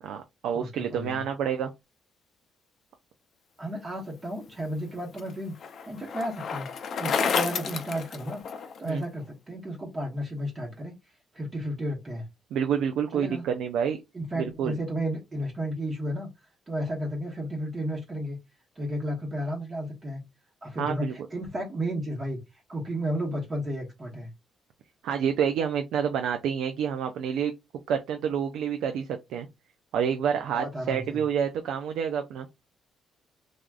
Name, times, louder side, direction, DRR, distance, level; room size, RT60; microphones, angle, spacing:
voice 1, 0.0-1.7 8.8-9.0 12.5-14.0 14.4-14.8 20.8-21.1 25.0-27.5 27.9-29.5 29.9-32.5, right 8 dB, 85° right, 0.4 m, -28 dB
voice 2, 0.5-1.2 3.6-5.5 5.8-6.7 7.0-10.9 11.3-12.3 13.1-13.4 14.1-16.3 16.7-18.4 18.8-20.2 20.6-24.3 30.5-31.2, equal, 30° right, 1.0 m, -33 dB
Bicycle, 4.5-8.9, left 6 dB, 60° left, 0.5 m, -31 dB
3.3 x 2.4 x 2.3 m
cardioid pair, 90°, 0 cm